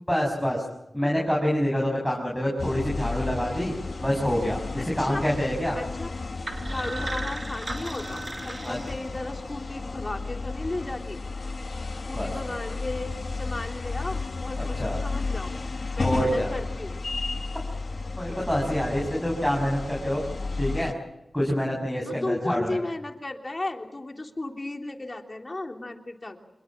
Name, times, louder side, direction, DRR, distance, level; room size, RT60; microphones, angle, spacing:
voice 1, 0.1-0.6 0.9-3.7 4.0-5.8 8.6-8.8 12.2-12.4 14.6-15.0 16.0-16.5 18.2-20.2 20.6-20.9 21.3-22.8, equal, ahead, -2 dB, 6.5 m, -26 dB
sound 1, 2.6-20.9, left 3 dB, 60° left, 1.3 m, -33 dB
voice 2, 4.8-5.2 5.7-6.1 6.6-11.2 12.0-15.5 16.0-17.0 18.9-19.0 22.0-26.4, left 2 dB, 40° left, 3 dB, 3.4 m, -35 dB
sound 2, 6.5-9.5, right 2 dB, 40° right, 1.9 m, -36 dB
26.5 x 22.0 x 7.5 m, 0.92 s
wide cardioid pair, 55°, 0 cm